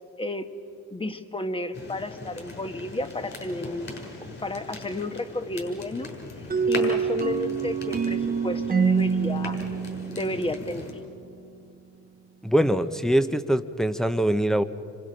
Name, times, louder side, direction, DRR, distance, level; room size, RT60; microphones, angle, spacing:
voice 1, 0.2-0.5 0.9-3.9 4.4-6.1 6.7-9.6 10.1-10.9, left 2 dB, 20° left, 9 dB, 1.4 m, -32 dB
sound 1, 1.7-10.9, left 2 dB, 40° left, 6.5 m, -40 dB
sound 2, 6.5-11.2, right 6 dB, 30° right, 1.1 m, -26 dB
voice 2, 12.4-14.6, right 1 dB, ahead, 9 dB, 0.9 m, -23 dB
27.5 x 26.0 x 5.2 m, 2.5 s
cardioid pair, 90°, 30 cm